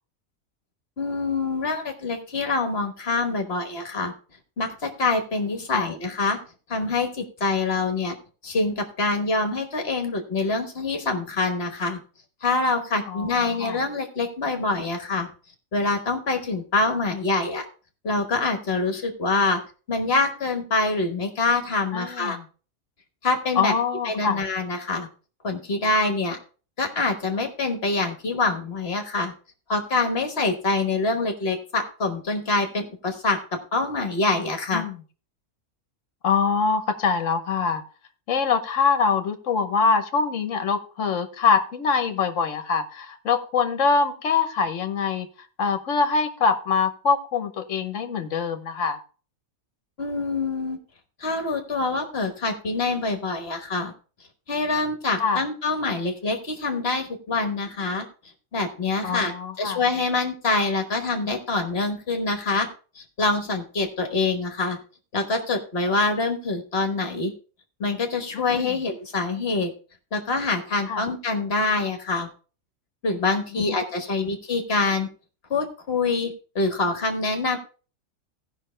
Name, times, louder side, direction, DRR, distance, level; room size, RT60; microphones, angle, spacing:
voice 1, 1.0-4.1 4.6-6.4 6.7-8.1 8.4-12.0 12.4-15.3 15.7-17.6 18.0-19.6 19.9-22.4 23.2-23.7 24.0-25.1 25.4-26.4 26.8-29.3 29.7-34.8 50.0-50.8 51.2-53.9 54.5-58.1 58.5-62.7 62.9-64.8 65.1-67.3 67.8-69.7 70.1-72.3 73.0-75.1 75.5-77.6, left 3 dB, 50° left, 6 dB, 1.5 m, -25 dB
voice 2, 21.9-22.4 23.6-24.4 34.7-34.9 36.2-37.8 38.3-45.3 45.6-49.0 55.2-55.4 59.0-59.8 68.3-68.7 70.9-71.0 73.5-73.7, left 5 dB, 65° left, 9 dB, 1.3 m, -24 dB
16.0 x 5.7 x 3.2 m, 0.37 s
omnidirectional pair, 1.4 m